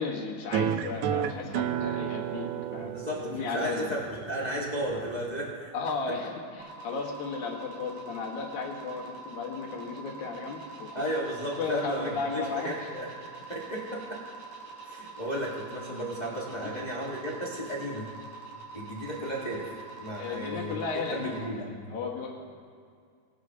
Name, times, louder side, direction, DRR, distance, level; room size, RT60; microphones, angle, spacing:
voice 1, 0.0-2.9 3.2-4.0 5.7-11.0 11.6-12.9 16.6-16.8 20.2-21.6 21.9-22.4, left 4 dB, 70° left, -2 dB, 3.0 m, -35 dB
sound 1, 0.5-5.5, right 10 dB, 80° right, 1.8 m, -32 dB
voice 2, 2.9-5.5 10.9-13.1 13.5-14.2 14.8-18.1 18.7-19.7 20.0-20.8 21.1-21.8, equal, 30° left, -5 dB, 0.7 m, -34 dB
sound 2, 6.6-21.5, right 4 dB, 60° right, 2.7 m, -45 dB
20.5 x 11.0 x 2.9 m, 2.1 s
omnidirectional pair, 3.7 m